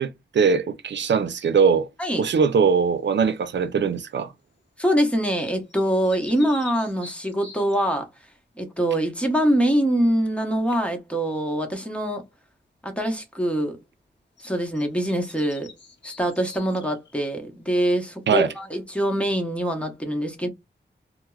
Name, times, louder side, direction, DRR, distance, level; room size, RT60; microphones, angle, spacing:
voice 1, 0.0-1.9 2.2-4.3 18.3-18.5, right 6 dB, 90° right, 0.5 m, -21 dB
sound 1, 3.2-3.6 5.4-8.0 14.4-14.5 14.7-17.2, left 3 dB, 85° left, 0.8 m, -45 dB
voice 2, 4.8-8.1 8.6-12.2 12.8-13.8 14.4-15.7 16.0-20.5, equal, 5° left, 0.9 m, -24 dB
4.4 x 2.0 x 2.3 m
wide cardioid pair, 110°, 18 cm